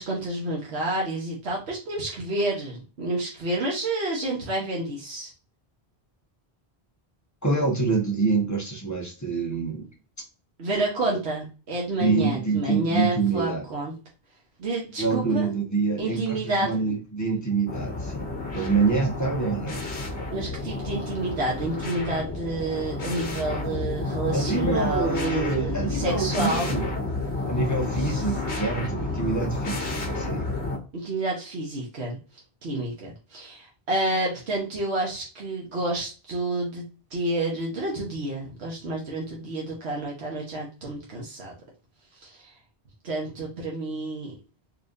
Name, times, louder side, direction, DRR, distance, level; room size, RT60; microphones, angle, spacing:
voice 1, 0.0-5.3 10.6-13.9 14.6-15.5 16.0-16.8 20.3-26.9 28.0-28.2 30.9-32.2 32.6-36.8 37.1-41.5 42.2-42.5 43.0-44.4, right 2 dB, 80° right, 1.4 m, -29 dB
voice 2, 7.4-9.9 11.1-11.2 12.0-13.7 15.0-20.1 24.3-26.9 27.5-30.5, right 4 dB, 15° left, 1.3 m, -26 dB
sound 1, 17.7-30.8, left 2 dB, 90° left, 1.4 m, -31 dB
4.4 x 3.3 x 2.6 m
omnidirectional pair, 1.1 m